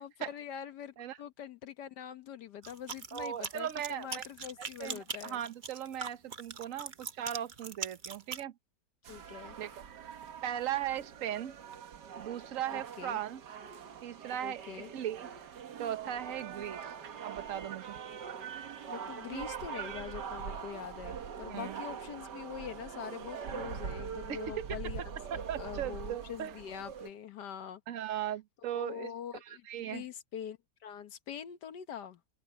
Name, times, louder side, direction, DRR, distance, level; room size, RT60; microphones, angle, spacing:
voice 1, 0.0-5.4 9.1-9.6 12.7-13.2 14.4-14.9 18.9-27.8 28.7-30.6 30.8-32.2, left 9 dB, 80° left, 1.7 m, -44 dB
sound 1, 2.6-8.4, right 5 dB, 35° right, 1.0 m, -41 dB
voice 2, 3.1-4.3 4.8-8.5 9.6-9.7 10.0-11.6 12.2-13.4 14.0-15.3 15.8-16.9 17.2-18.0 21.5-21.8 24.3-24.7 25.3-26.5 27.9-29.1 29.4-30.0, right 11 dB, 55° right, 1.3 m, -38 dB
sound 2, 9.0-27.1, right 7 dB, 85° right, 2.0 m, -43 dB
omnidirectional pair, 1.8 m